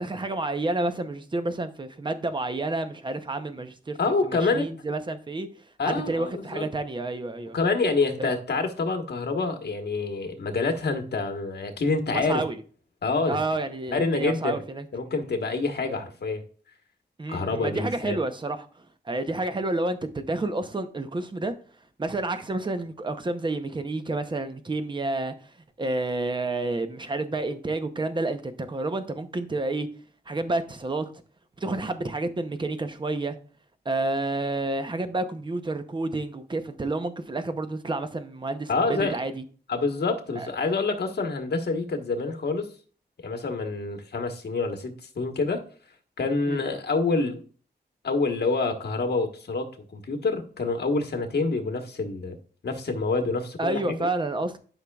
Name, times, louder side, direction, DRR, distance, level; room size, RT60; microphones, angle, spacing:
voice 1, 0.0-4.0 4.3-5.5 5.8-7.6 8.2-8.3 12.1-12.6 13.3-14.9 17.2-18.7 19.1-21.5 22.0-25.3 25.8-29.9 30.3-31.1 31.6-33.4 33.8-39.4 40.4-40.5 46.5-46.6 53.6-54.6, right 2 dB, 25° right, 0.7 m, -29 dB
voice 2, 4.0-4.7 5.8-6.7 7.5-12.4 13.0-13.4 13.9-14.6 14.9-16.4 17.3-18.2 38.7-39.2 39.7-42.7 43.2-45.6 46.2-47.4 48.0-52.4 52.6-54.1, left 3 dB, 65° left, 1.3 m, -27 dB
11.5 x 5.6 x 2.3 m
wide cardioid pair, 150°, 18 cm